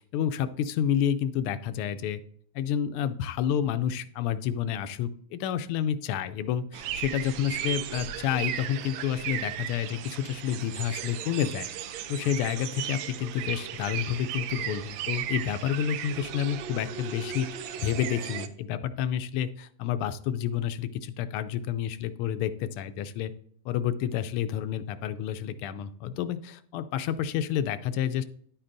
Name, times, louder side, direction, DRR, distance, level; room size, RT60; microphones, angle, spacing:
voice 1, 0.0-2.2 2.5-11.7 12.1-17.5 17.8-23.3 23.6-28.2, left 9 dB, 80° left, 11 dB, 1.5 m, -29 dB
sound 1, 6.7-18.5, right 10 dB, 70° right, 1.2 m, -36 dB
10.5 x 8.6 x 2.6 m, 0.62 s
omnidirectional pair, 2.4 m